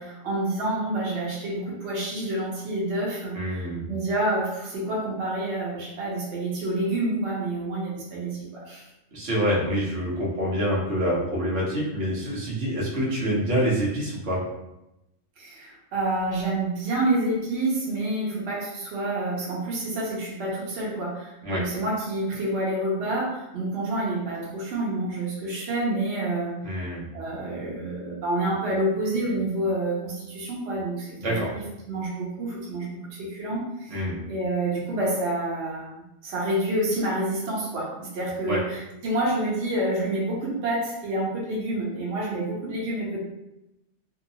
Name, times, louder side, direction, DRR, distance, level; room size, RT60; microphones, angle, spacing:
voice 1, 0.0-8.9 15.4-26.5 27.1-34.0 34.3-43.2, right 1 dB, 65° right, -5 dB, 1.0 m, -28 dB
voice 2, 3.3-3.8 9.1-14.4 21.4-21.6 26.6-27.1 31.2-31.5 33.9-34.2 38.5-38.6, equal, 85° right, -6 dB, 1.1 m, -26 dB
2.7 x 2.0 x 2.6 m, 0.91 s
omnidirectional pair, 1.2 m